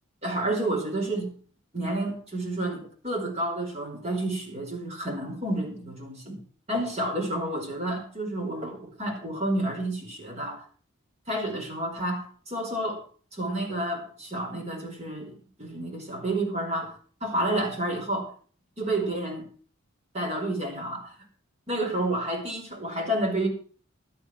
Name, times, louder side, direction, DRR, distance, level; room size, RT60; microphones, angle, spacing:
voice 1, 0.2-1.3 1.7-6.4 6.7-10.6 11.3-13.0 13.3-17.0 17.2-18.3 18.8-19.5 20.1-21.1 21.7-23.5, right 1 dB, 30° right, 0 dB, 4.8 m, -30 dB
12.5 x 10.0 x 6.1 m, 0.42 s
head